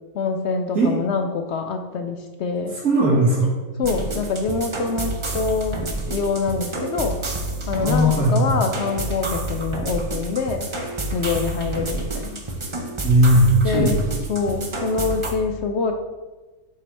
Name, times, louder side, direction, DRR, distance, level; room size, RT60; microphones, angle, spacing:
voice 1, 0.1-2.8 3.8-5.8 6.1-7.2 7.7-10.7 11.1-12.4 13.6-14.0 14.3-15.9, left 4 dB, 70° left, 5 dB, 0.6 m, -25 dB
voice 2, 2.7-3.5 7.8-8.5 13.0-14.0, right 1 dB, 55° right, -11 dB, 2.4 m, -17 dB
sound 1, 3.8-15.3, right 2 dB, 35° right, 0.5 m, -29 dB
7.0 x 4.8 x 4.5 m, 1.2 s
omnidirectional pair, 1.7 m